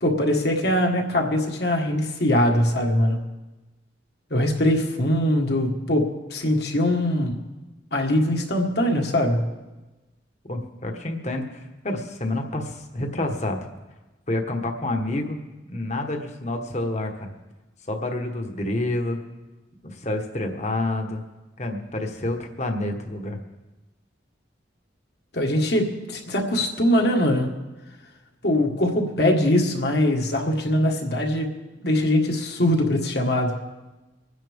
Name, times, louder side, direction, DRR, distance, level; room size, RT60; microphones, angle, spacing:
voice 1, 0.0-3.2 4.3-7.4 7.9-9.5 25.3-27.5 28.4-31.5 31.8-33.6, left 1 dB, 55° left, 1 dB, 1.7 m, -22 dB
voice 2, 10.5-13.6 14.3-15.4 15.7-17.3 17.9-19.2 19.8-21.2 21.6-23.4, left 1 dB, 35° left, 4 dB, 1.4 m, -28 dB
25.5 x 10.0 x 3.6 m, 1.1 s
head